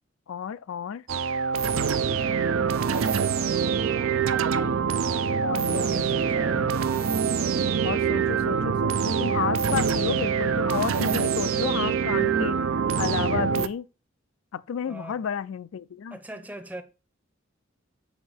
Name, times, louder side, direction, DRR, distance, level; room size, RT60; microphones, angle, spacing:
voice 1, 0.3-1.0 5.4-6.1 7.8-13.9 14.5-16.2, left 8 dB, 80° left, 0.4 m, -32 dB
sound 1, 1.1-13.7, right 6 dB, 80° right, 0.5 m, -25 dB
voice 2, 2.7-3.7 5.6-6.7 14.9-15.2 16.1-16.8, right 1 dB, 10° right, 0.6 m, -41 dB
8.0 x 2.8 x 5.5 m
head